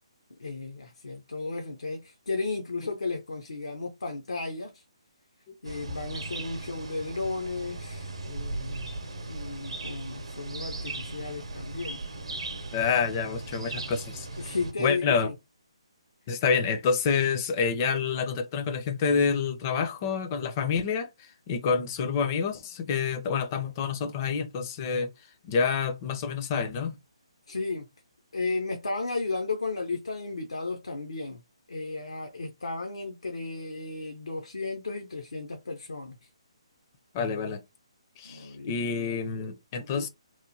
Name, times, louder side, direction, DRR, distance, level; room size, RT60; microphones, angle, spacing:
voice 1, 0.4-4.8 5.6-8.9 9.3-12.0 14.4-15.3 27.5-27.9 28.3-31.4 31.7-36.3 38.2-38.7, left 3 dB, 80° left, 0.6 m, -34 dB
sound 1, 5.6-14.7, right 2 dB, 70° right, 0.7 m, -38 dB
voice 2, 12.7-14.3 14.8-15.3 16.3-25.1 25.4-27.0 37.1-37.6 38.2-40.1, left 6 dB, 30° left, 0.5 m, -28 dB
3.0 x 2.1 x 2.6 m
figure-of-eight pair, 145°, 3 cm